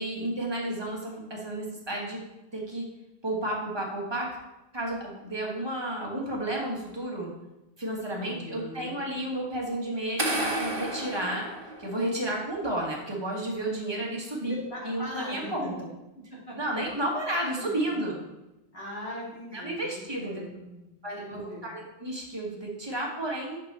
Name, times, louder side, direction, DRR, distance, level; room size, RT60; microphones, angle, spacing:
voice 1, 0.0-2.2 2.5-2.9 3.2-4.3 4.7-7.3 7.8-11.5 11.8-14.6 14.8-15.7 16.6-18.2 19.5-20.5 21.0-23.6, right 1 dB, 25° right, -2 dB, 1.3 m, -32 dB
voice 2, 8.2-9.0 14.4-15.5 16.3-16.7 17.5-17.9 18.7-21.7, equal, 65° left, -6 dB, 2.5 m, -41 dB
sound 1, 10.2-12.3, right 1 dB, 55° right, 1.4 m, -31 dB
6.1 x 5.1 x 4.2 m, 0.97 s
omnidirectional pair, 1.1 m